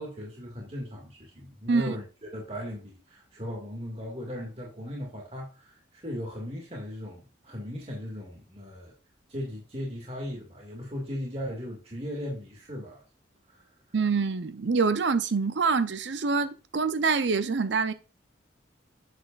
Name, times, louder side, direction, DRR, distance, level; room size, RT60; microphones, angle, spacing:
voice 1, 0.0-8.9 9.3-13.0 13.5-13.7, equal, 30° right, 2.0 m, -37 dB
voice 2, 13.9-17.9, right 4 dB, 70° right, 0.6 m, -25 dB
7.9 x 7.8 x 2.4 m
head